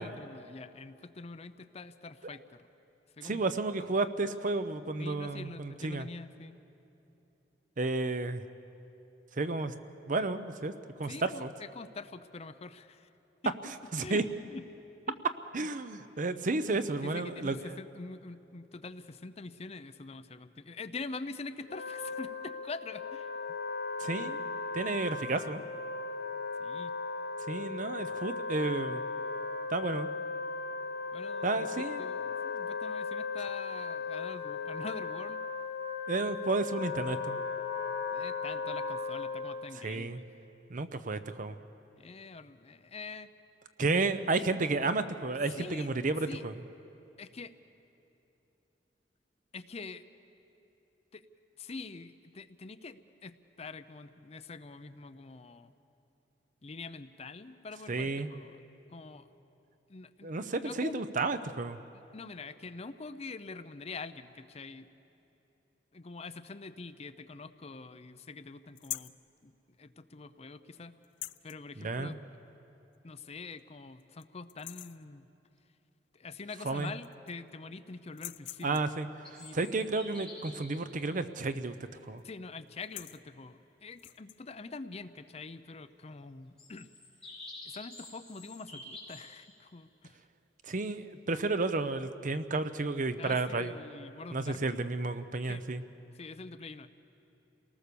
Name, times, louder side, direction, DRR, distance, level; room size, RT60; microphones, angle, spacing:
voice 1, 0.0-2.7 3.1-3.4 5.0-6.6 11.0-13.1 13.4-13.5 14.0-14.6 15.1-15.2 17.0-23.4 26.6-27.0 31.1-35.4 38.1-40.2 42.0-43.3 45.6-45.9 46.3-46.4 47.2-47.5 49.5-50.0 51.1-51.3 51.6-55.7 56.6-58.6 58.9-59.3 59.9-61.0 62.1-64.9 65.9-69.1 69.4-69.5 69.8-71.0 71.4-72.2 73.0-75.3 76.1-78.8 79.4-79.9 82.2-86.9 87.6-90.2 93.2-94.8 95.5-95.6 96.1-96.9, left 3 dB, 35° left, 11 dB, 0.6 m, -45 dB
voice 2, 3.2-6.1 7.8-8.4 9.3-9.7 10.1-10.7 11.0-11.5 13.9-14.2 15.5-17.8 24.0-24.4 24.7-25.6 27.5-29.0 29.7-30.1 31.4-32.1 36.1-37.4 39.8-40.2 40.7-41.6 43.8-46.5 57.9-58.3 60.2-61.8 71.8-72.2 76.6-76.9 78.6-81.8 82.0-82.2 90.6-93.8 94.3-95.8, right 3 dB, 45° right, 11 dB, 0.7 m, -32 dB
Wind instrument woodwind instrument, 21.6-39.7, left 4 dB, 60° left, 1.2 m, -37 dB
sound 1, 68.8-69.2 71.0-71.6 72.9-73.0 73.5-73.6 74.0-74.2 74.5-75.0 76.4-76.5 76.8-77.5 78.1-79.0 81.3-81.7 81.9-82.2 82.7-83.2 83.9-84.4, left 16 dB, 80° left, 0.4 m, -44 dB
sound 2, 79.3-80.8 81.9-82.0 86.6-89.3, left 2 dB, 5° left, 5.9 m, -48 dB
28.5 x 18.5 x 6.9 m, 2.9 s
head